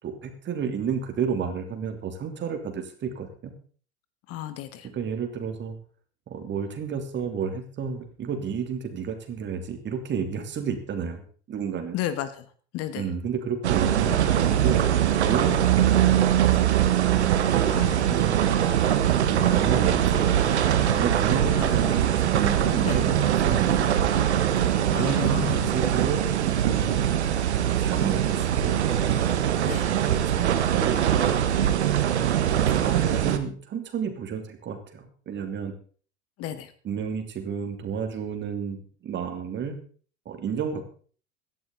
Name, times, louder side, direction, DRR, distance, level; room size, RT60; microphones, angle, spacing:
voice 1, 0.0-3.5 4.9-5.8 6.3-12.0 12.9-14.8 15.2-16.7 17.0-17.3 17.7-18.4 19.0-20.5 20.9-24.1 24.9-27.0 27.8-28.7 29.9-31.0 31.6-31.9 32.5-35.7 36.8-39.8 40.2-40.8, right 6 dB, 30° right, 6 dB, 3.0 m, -31 dB
voice 2, 4.3-4.9 11.9-12.5 12.7-13.0 17.7-18.1 21.5-21.7 22.8-23.0 24.9-25.7 29.6-29.9 36.4-36.7, left 12 dB, 45° left, 12 dB, 1.6 m, -33 dB
sound 1, 13.6-33.4, right 10 dB, 70° right, 1.6 m, -22 dB
17.0 x 13.0 x 3.9 m, 0.43 s
figure-of-eight pair, 80°, 34 cm